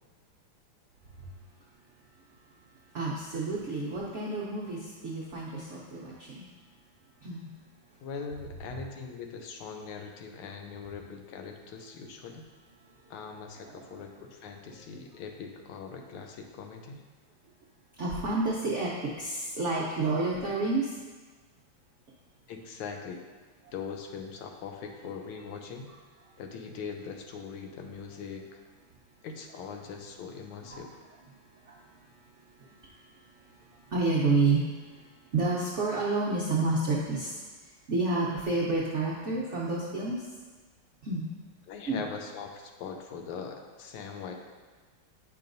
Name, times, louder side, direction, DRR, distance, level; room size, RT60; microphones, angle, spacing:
voice 1, 2.9-6.5 7.2-7.5 13.6-14.0 18.0-20.9 30.7-30.8 31.6-31.8 32.8-32.9 33.5-33.6 33.9-34.6 34.9-35.0 35.3-40.2 41.0-41.3 41.9-42.0, right 3 dB, 80° right, -5 dB, 0.6 m, -29 dB
voice 2, 8.0-12.5 13.1-17.0 22.5-23.2 23.7-25.9 26.4-28.6 29.2-31.0 41.7-44.3, left 5 dB, 80° left, 4 dB, 1.5 m, -41 dB
8.6 x 5.6 x 2.6 m, 1.4 s
omnidirectional pair, 2.4 m